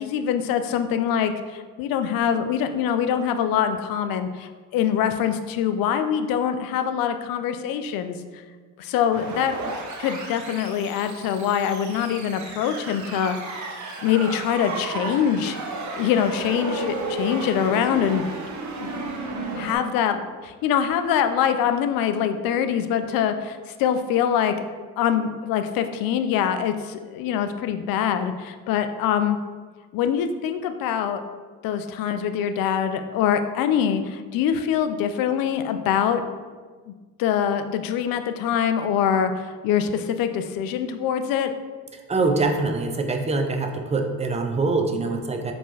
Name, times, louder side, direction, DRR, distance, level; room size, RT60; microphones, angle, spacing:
voice 1, 0.0-8.2 8.8-9.7 10.0-13.7 14.0-15.6 15.9-18.2 18.8-18.9 19.6-24.5 25.0-29.4 29.9-31.2 31.6-36.2 36.9-37.0 37.2-41.5, left 8 dB, 60° left, 8 dB, 0.5 m, -24 dB
sound 1, 9.1-19.8, right 3 dB, 45° right, 0.8 m, -33 dB
voice 2, 41.9-45.5, right 3 dB, 15° right, 4 dB, 0.4 m, -24 dB
4.5 x 2.9 x 2.8 m, 1.4 s
supercardioid pair, 75°, 40 cm